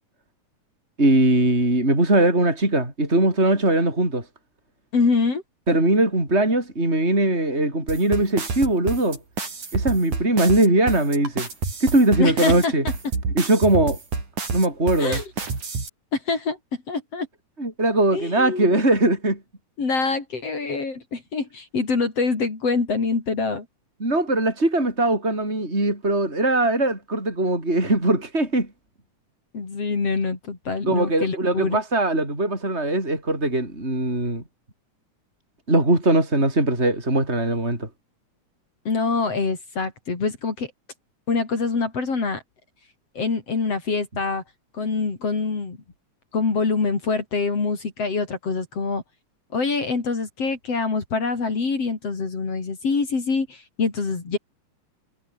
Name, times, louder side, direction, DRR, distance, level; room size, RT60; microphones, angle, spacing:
voice 1, 1.0-4.2 5.7-9.2 9.7-11.5 11.8-12.8 13.3-14.0 14.5-15.2 17.6-19.4 24.0-28.7 30.9-34.4 35.7-37.9, right 1 dB, 20° right, 7.2 m, -20 dB
voice 2, 4.9-5.4 12.2-12.7 15.0-15.2 16.1-16.6 16.9-17.3 18.1-18.8 19.8-23.7 29.5-31.8 38.9-40.7 41.3-42.4 43.2-44.4 44.7-45.8 46.3-49.0 49.5-54.4, left 4 dB, 55° left, 5.1 m, -25 dB
sound 1, 7.9-15.9, right 4 dB, 85° right, 7.2 m, -28 dB
omnidirectional pair, 3.4 m